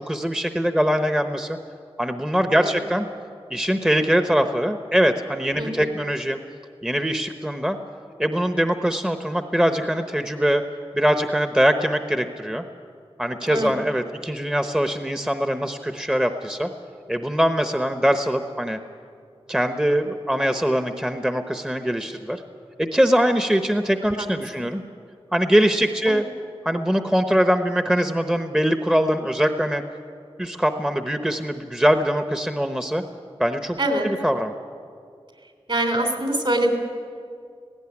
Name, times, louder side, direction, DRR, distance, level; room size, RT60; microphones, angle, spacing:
voice 1, 0.0-1.6 2.0-3.1 3.5-6.4 6.8-7.8 8.2-10.6 10.9-12.6 13.2-16.7 17.1-18.8 19.5-22.4 22.8-24.8 25.3-26.2 26.6-29.8 30.4-33.0 33.4-33.8 34.0-34.5, equal, 5° right, 7 dB, 0.9 m, -22 dB
voice 2, 2.5-2.8 5.6-5.9 13.4-13.7 24.2-24.3 33.8-34.1 35.7-36.7, right 1 dB, 55° right, 4 dB, 3.3 m, -24 dB
18.0 x 16.5 x 9.8 m, 2.3 s
wide cardioid pair, 65°, 10 cm